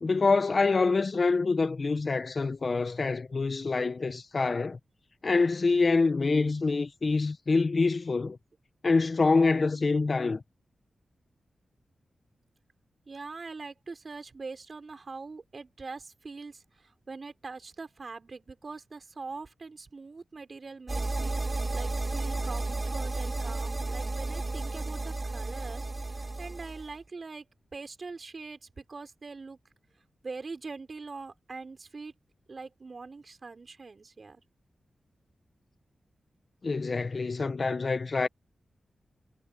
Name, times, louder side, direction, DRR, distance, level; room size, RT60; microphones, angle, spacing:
voice 1, 0.0-4.8 5.2-8.4 8.8-10.4 36.6-38.3, left 4 dB, 50° left, 0.8 m, -26 dB
voice 2, 13.1-27.5 27.7-29.6 30.2-32.1 32.5-34.4, right 4 dB, 50° right, 5.2 m, -43 dB
sound 1, 20.9-26.9, right 2 dB, 35° right, 3.2 m, -32 dB
cardioid pair, 65°, 0 cm